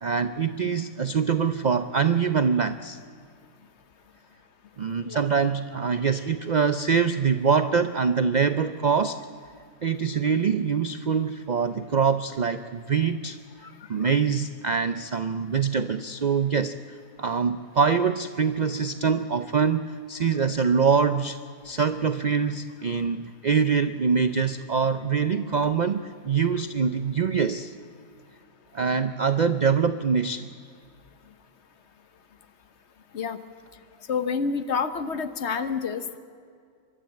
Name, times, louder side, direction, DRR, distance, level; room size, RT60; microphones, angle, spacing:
voice 1, 0.0-3.0 4.8-9.2 9.8-13.4 13.9-21.4 21.6-27.7 28.7-30.5, right 6 dB, 80° right, 11 dB, 0.4 m, -24 dB
voice 2, 34.1-36.2, left 5 dB, 55° left, 11 dB, 1.1 m, -28 dB
24.5 x 12.5 x 8.8 m, 2.3 s
omnidirectional pair, 1.6 m